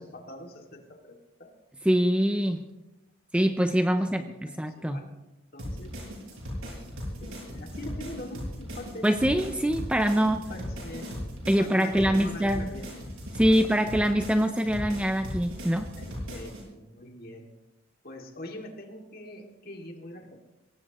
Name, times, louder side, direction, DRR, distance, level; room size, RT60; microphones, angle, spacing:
voice 1, 0.0-1.5 3.9-5.1 5.5-5.9 7.2-9.1 10.3-11.1 11.6-12.9 13.7-14.1 16.0-17.5 18.0-20.4, left 1 dB, 45° left, 2 dB, 2.3 m, -43 dB
voice 2, 1.8-2.6 3.3-5.0 9.0-10.4 11.5-12.7 13.3-15.9, equal, 5° right, 7 dB, 0.5 m, -24 dB
sound 1, 5.6-16.6, equal, 85° right, 7.5 m, -38 dB
23.5 x 18.0 x 3.0 m, 1.0 s
head